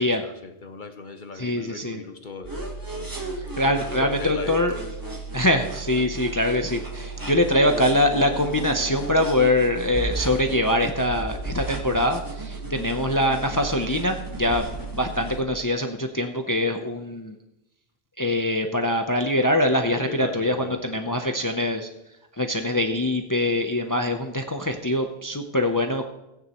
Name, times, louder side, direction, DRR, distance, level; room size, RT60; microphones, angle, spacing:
voice 1, 0.0-2.6 2.9-3.2 3.5-4.8 14.8-14.9 20.0-21.2, left 4 dB, 55° left, 7 dB, 0.9 m, -39 dB
voice 2, 1.4-2.0 3.4-4.8 5.3-14.7 15.0-17.3 18.2-21.9 22.4-26.0, left 1 dB, 20° left, 5 dB, 0.6 m, -23 dB
sound 1, 2.4-15.4, right 2 dB, 20° right, 1.3 m, -34 dB
16.0 x 9.3 x 3.0 m, 0.87 s
omnidirectional pair, 1.0 m